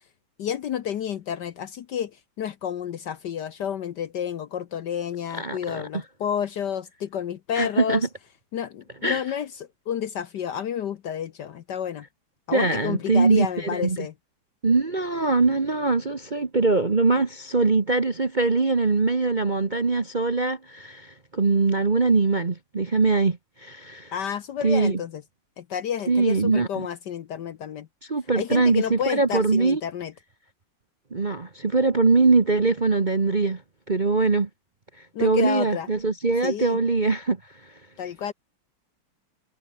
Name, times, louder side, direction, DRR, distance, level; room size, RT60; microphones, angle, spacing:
voice 1, 0.4-2.1 2.4-8.1 8.5-12.0 12.5-14.1 24.1-25.2 25.6-27.9 28.4-30.1 35.1-35.9 36.4-36.8 38.0-38.3, left 9 dB, 60° left, 1.3 m, -30 dB
voice 2, 5.4-5.8 7.5-8.0 9.0-9.2 12.5-14.0 14.6-24.1 24.6-25.0 26.1-26.9 28.1-29.8 31.1-33.6 33.9-34.5 35.2-37.4, right 3 dB, 30° right, 1.0 m, -22 dB
omnidirectional pair, 2.4 m